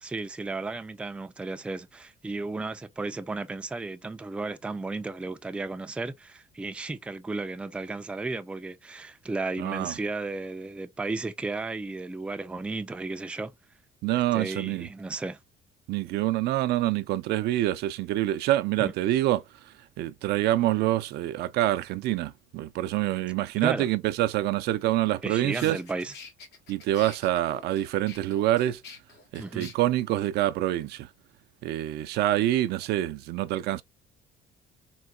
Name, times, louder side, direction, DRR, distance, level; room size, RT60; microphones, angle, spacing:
voice 1, 0.0-13.5 14.3-15.4 18.8-18.9 23.6-23.9 25.2-26.1 29.4-29.7, right 3 dB, 5° right, 0.3 m, -34 dB
voice 2, 9.6-9.9 14.0-14.9 15.9-25.8 26.7-28.8 29.3-31.1 31.6-33.8, right 14 dB, 80° right, 0.4 m, -26 dB
sound 1, 25.6-29.7, left 5 dB, 85° left, 1.4 m, -47 dB
3.8 x 2.2 x 2.3 m
cardioid pair, 110°, 17 cm